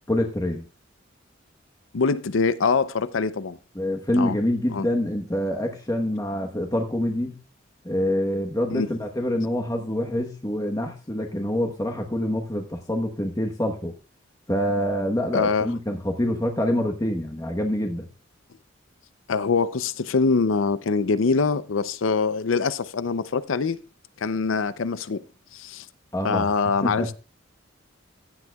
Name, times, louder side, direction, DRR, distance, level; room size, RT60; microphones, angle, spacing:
voice 1, 0.1-0.6 3.7-7.4 7.8-13.9 14.5-18.1 26.1-26.5 26.8-27.1, left 1 dB, 20° left, 1.1 m, -26 dB
voice 2, 1.9-3.6 4.1-4.4 4.7-4.9 8.7-8.9 15.3-15.7 19.3-23.8 24.2-25.2 25.5-25.9 26.2-27.1, left 4 dB, 80° left, 0.6 m, -24 dB
15.5 x 10.5 x 2.3 m
head